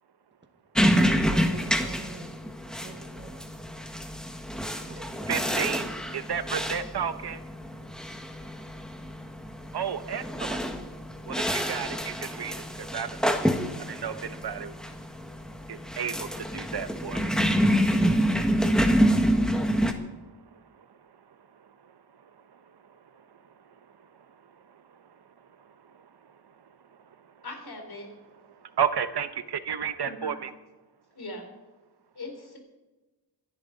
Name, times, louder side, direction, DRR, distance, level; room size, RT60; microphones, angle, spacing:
sound 1, 0.7-19.9, equal, ahead, 1.5 m, -27 dB
voice 1, 0.8-2.4 2.8-3.3 4.9-5.3, right 2 dB, 25° right, 6 dB, 1.4 m, -43 dB
voice 2, 5.3-7.4 9.7-10.7 11.3-13.2 13.8-14.7 15.7-27.4 28.5-30.5, right 7 dB, 75° right, 11 dB, 0.9 m, -35 dB
voice 3, 27.4-28.1 30.0-30.4 31.1-31.4 32.1-32.6, left 2 dB, 70° left, 3 dB, 4.0 m, -40 dB
26.5 x 11.0 x 4.0 m, 1.1 s
wide cardioid pair, 105°, 40 cm